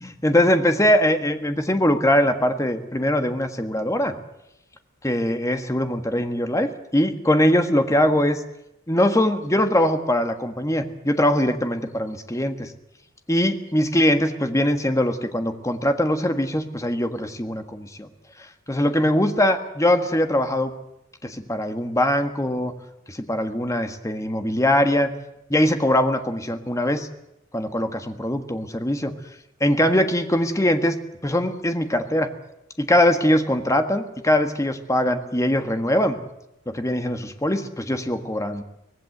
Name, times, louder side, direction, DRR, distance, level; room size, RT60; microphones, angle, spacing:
voice 1, 0.0-4.1 5.0-8.4 8.9-12.7 13.3-18.1 18.7-20.7 21.2-22.7 23.1-25.1 25.5-27.1 27.5-29.1 29.6-30.9 31.2-32.3 32.8-36.2 36.7-38.6, left 1 dB, 15° left, 7 dB, 1.6 m, -22 dB
24.0 x 18.0 x 8.0 m, 0.83 s
head